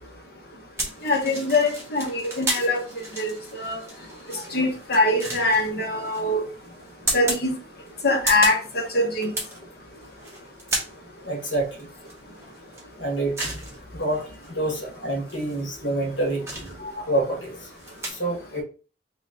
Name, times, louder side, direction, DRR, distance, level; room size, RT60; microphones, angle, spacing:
sound 1, 0.8-18.1, right 1 dB, 15° right, 1.1 m, -34 dB
voice 1, 1.0-2.8 3.2-3.8 4.5-6.4 7.1-7.6 8.0-9.3, left 2 dB, 50° left, 1.0 m, -23 dB
voice 2, 11.2-11.9 13.0-13.5 13.9-17.7 18.0-18.6, right 1 dB, 75° left, 1.4 m, -28 dB
3.2 x 3.0 x 3.7 m
head